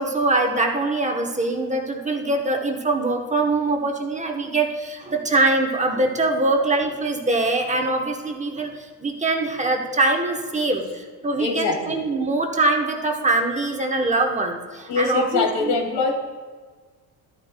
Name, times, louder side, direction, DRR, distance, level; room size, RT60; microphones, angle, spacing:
voice 1, 0.0-15.7, right 2 dB, 20° right, 3 dB, 0.9 m, -23 dB
voice 2, 11.4-12.0 14.9-16.1, left 4 dB, 85° left, 1 dB, 2.3 m, -23 dB
13.0 x 9.7 x 2.2 m, 1.5 s
cardioid pair, 120°, 40 cm